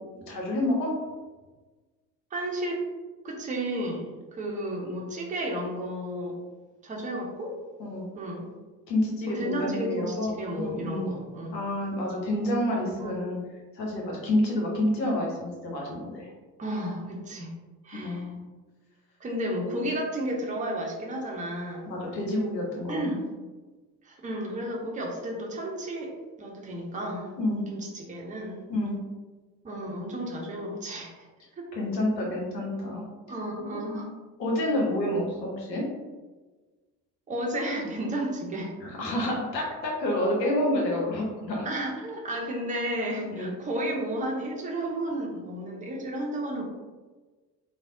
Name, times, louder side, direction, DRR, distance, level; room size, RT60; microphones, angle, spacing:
voice 1, 0.3-0.9 7.8-8.0 8.9-10.3 10.6-11.1 11.5-13.4 13.7-16.3 17.9-18.4 21.9-23.0 27.4-27.6 28.7-29.0 31.7-33.0 34.4-35.8 38.8-41.7 43.3-43.5, left 1 dB, 80° left, -2 dB, 0.8 m, -28 dB
voice 2, 2.3-2.8 3.2-6.3 6.8-7.5 8.1-8.5 9.3-11.6 13.0-13.1 16.6-17.5 17.8-18.3 19.2-21.8 22.9-23.2 24.0-26.1 26.4-27.3 27.7-28.6 29.6-31.1 31.5-31.7 33.3-34.1 37.3-38.7 41.6-46.6, right 1 dB, 15° right, -1 dB, 0.6 m, -32 dB
3.2 x 2.0 x 2.5 m, 1.3 s
figure-of-eight pair, 55°, 49 cm